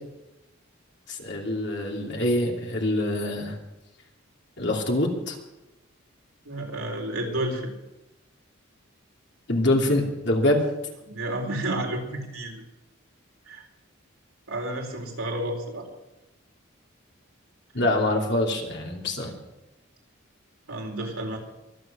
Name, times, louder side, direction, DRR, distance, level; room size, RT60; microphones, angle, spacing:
voice 1, 1.1-3.6 4.6-5.4 9.5-10.7 17.7-19.3, left 1 dB, 55° left, 1 dB, 2.9 m, -25 dB
voice 2, 6.5-7.7 11.1-12.6 13.5-13.6 14.5-15.9 20.7-21.4, right 1 dB, 85° right, 1 dB, 4.2 m, -31 dB
24.0 x 8.1 x 6.2 m, 0.96 s
head